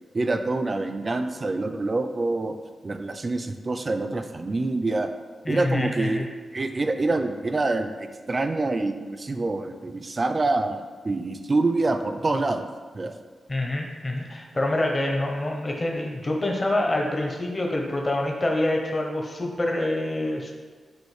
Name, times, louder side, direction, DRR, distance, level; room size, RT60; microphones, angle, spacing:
voice 1, 0.1-2.5 2.8-5.1 5.5-6.3 6.5-12.7 12.9-13.2, right 2 dB, 35° right, 7 dB, 0.3 m, -26 dB
voice 2, 5.5-6.3 13.5-20.5, left 1 dB, 30° left, 1 dB, 0.6 m, -26 dB
6.2 x 2.5 x 3.1 m, 1.5 s
wide cardioid pair, 105°, 0 cm